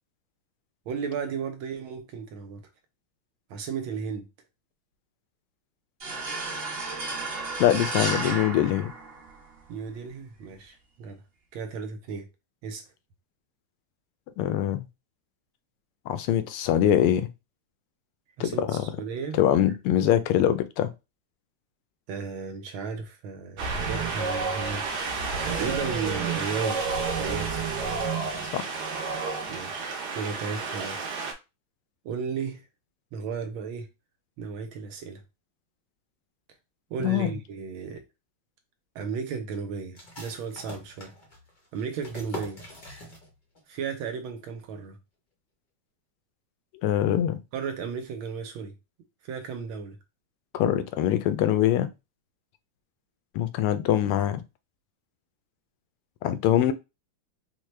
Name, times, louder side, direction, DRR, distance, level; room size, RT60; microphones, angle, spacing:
voice 1, 0.9-2.6 3.5-4.3 9.7-11.2 11.5-12.3 12.6-12.8 18.4-19.4 22.1-24.9 25.4-27.7 29.5-31.1 32.0-32.7 33.1-33.9 34.4-35.2 36.9-38.0 38.9-41.1 41.7-42.6 43.7-45.0 47.5-48.7 49.2-50.0, right 6 dB, 80° right, 1.5 m, -34 dB
sound 1, 6.0-9.6, right 3 dB, 35° right, 1.0 m, -32 dB
voice 2, 7.6-8.9 14.4-14.9 16.1-17.3 18.4-18.8 19.4-20.9 28.5-28.8 37.0-37.3 46.8-47.4 50.5-51.9 53.3-54.4 56.2-56.7, left 11 dB, 90° left, 1.5 m, -23 dB
Wind, 23.6-31.3, right 4 dB, 60° right, 1.2 m, -30 dB
sound 2, 39.9-43.6 43.9-44.0 44.4-44.9, equal, 65° left, 0.4 m, -43 dB
4.5 x 2.2 x 3.2 m
omnidirectional pair, 2.3 m